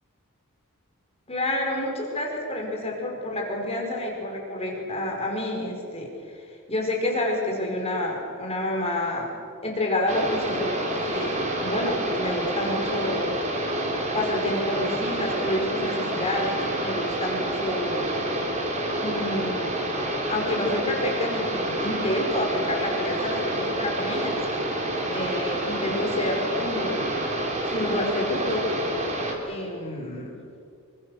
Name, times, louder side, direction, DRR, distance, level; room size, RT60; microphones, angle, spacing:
voice 1, 1.3-6.4 6.7-9.3 9.6-13.3 14.1-18.1 19.0-19.7 20.3-24.3 25.1-27.1 27.7-28.7 29.4-30.3, left 1 dB, 30° left, 0 dB, 5.0 m, -28 dB
sound 1, 10.1-29.4, right 1 dB, 35° right, 3.7 m, -28 dB
27.0 x 24.0 x 6.6 m, 2.3 s
head